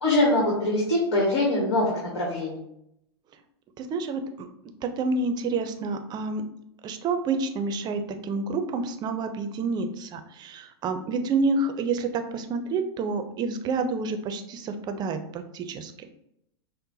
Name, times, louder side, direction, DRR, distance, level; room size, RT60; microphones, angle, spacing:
voice 1, 0.0-2.6, left 1 dB, 80° left, -4 dB, 1.3 m, -23 dB
voice 2, 3.8-4.5 4.8-6.4 6.8-16.1, right 3 dB, 30° right, 7 dB, 0.5 m, -29 dB
5.5 x 2.1 x 2.7 m, 0.78 s
hypercardioid pair, 110°, 14 cm